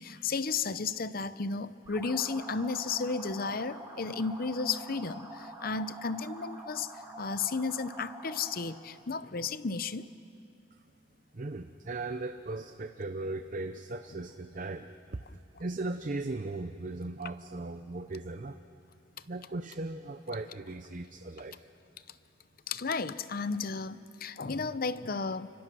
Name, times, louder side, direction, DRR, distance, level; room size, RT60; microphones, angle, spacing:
voice 1, 0.0-6.9 7.2-10.1 22.7-25.5, left 4 dB, 45° left, 14 dB, 0.7 m, -33 dB
sound 1, 1.9-8.7, right 1 dB, 15° right, 6.6 m, -46 dB
voice 2, 11.3-15.2 15.6-18.6 19.3-21.7, right 2 dB, 40° right, 8 dB, 0.6 m, -38 dB
29.5 x 25.0 x 6.2 m, 2.5 s
head